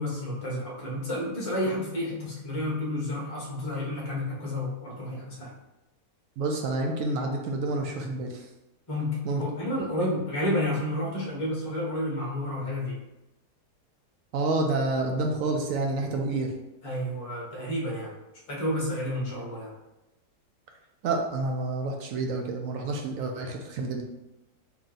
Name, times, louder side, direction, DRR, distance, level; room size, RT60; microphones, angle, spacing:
voice 1, 0.0-5.5 8.9-13.0 16.8-18.2 18.5-19.7, left 1 dB, 30° left, -4 dB, 0.6 m, -30 dB
voice 2, 6.4-8.5 9.2-9.4 14.3-16.6 19.2-19.3 21.0-24.0, right 2 dB, 65° right, 2 dB, 0.8 m, -29 dB
3.0 x 2.9 x 3.8 m, 0.96 s
omnidirectional pair, 1.8 m